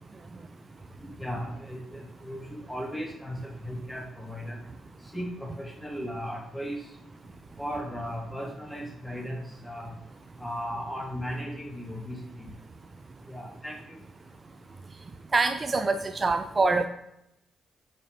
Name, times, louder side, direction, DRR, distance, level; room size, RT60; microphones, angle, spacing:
voice 1, 1.2-4.6 5.1-6.8 7.6-9.9 10.4-12.5 13.3-14.0, equal, 10° left, -1 dB, 3.1 m, -36 dB
voice 2, 15.3-16.9, right 3 dB, 35° right, 8 dB, 0.5 m, -24 dB
8.5 x 5.4 x 3.8 m, 0.81 s
figure-of-eight pair, 40°, 0 cm